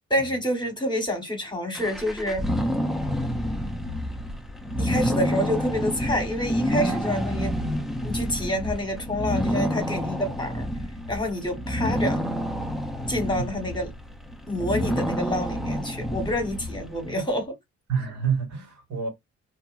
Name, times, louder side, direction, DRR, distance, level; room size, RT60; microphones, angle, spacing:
voice 1, 0.1-2.4 4.8-7.5 8.0-10.7 11.1-12.2 13.1-13.9 14.5-17.5, equal, 15° left, 1.2 m, -28 dB
sound 1, 1.7-17.2, equal, ahead, 0.5 m, -28 dB
voice 2, 17.9-19.1, right 6 dB, 65° right, 1.8 m, -29 dB
2.7 x 2.7 x 2.4 m
cardioid pair, 90°, 30 cm